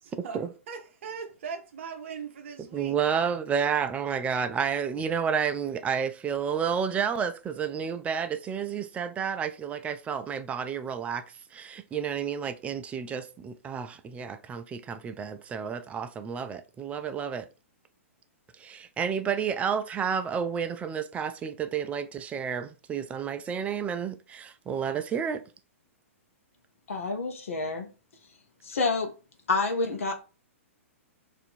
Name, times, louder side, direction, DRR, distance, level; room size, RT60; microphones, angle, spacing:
voice 1, 0.0-3.0, right 6 dB, 60° right, 0.6 m, -40 dB
voice 2, 2.7-11.2 11.5-17.5 18.6-25.4, right 7 dB, 15° right, 0.3 m, -30 dB
voice 3, 26.9-27.9 28.6-29.1 29.5-30.1, left 3 dB, 75° left, 0.7 m, -28 dB
2.6 x 2.5 x 4.2 m
hypercardioid pair, 115°, 7 cm